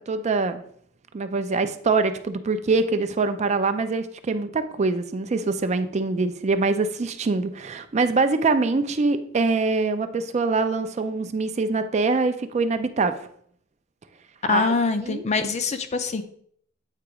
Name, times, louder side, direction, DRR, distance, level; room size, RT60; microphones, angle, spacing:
voice 1, 0.1-0.6 1.1-13.1 14.5-14.7 15.0-15.2, right 3 dB, 35° right, 9 dB, 0.4 m, -24 dB
voice 2, 14.4-16.2, left 4 dB, 35° left, 9 dB, 0.5 m, -24 dB
8.2 x 2.9 x 4.8 m, 0.63 s
head